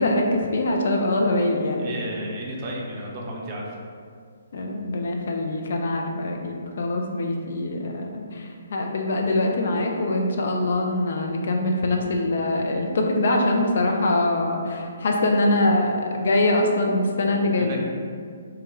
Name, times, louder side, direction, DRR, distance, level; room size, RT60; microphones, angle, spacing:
voice 1, 0.0-1.8 4.5-17.8, left 2 dB, 55° left, 1 dB, 0.4 m, -23 dB
voice 2, 1.8-3.7 17.5-17.8, right 1 dB, 35° right, -2 dB, 0.6 m, -33 dB
3.5 x 2.2 x 2.9 m, 2.1 s
figure-of-eight pair, 130°, 0 cm